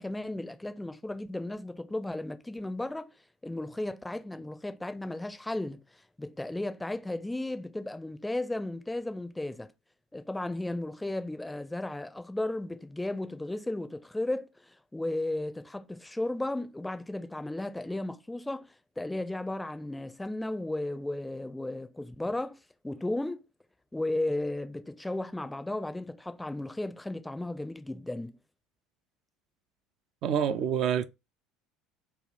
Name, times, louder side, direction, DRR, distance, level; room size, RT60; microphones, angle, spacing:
voice 1, 0.0-3.1 3.4-5.8 6.2-9.7 10.1-14.5 14.9-18.7 19.0-23.4 23.9-28.4, left 1 dB, 10° left, 0.5 m, -34 dB
voice 2, 30.2-31.1, right 8 dB, 50° right, 0.3 m, -27 dB
3.3 x 2.3 x 4.2 m
figure-of-eight pair, 65°, 0 cm